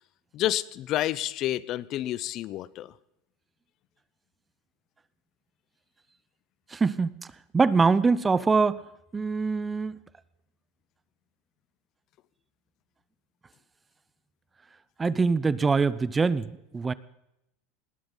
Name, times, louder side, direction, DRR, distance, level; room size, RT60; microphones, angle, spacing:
voice 1, 0.3-2.9, left 14 dB, 45° left, 19 dB, 0.7 m, -29 dB
voice 2, 6.7-7.2 7.5-8.8 9.1-10.0 15.0-16.9, right 4 dB, 15° right, 18 dB, 0.6 m, -24 dB
19.5 x 18.5 x 3.9 m, 0.83 s
supercardioid pair, 120°, 0 cm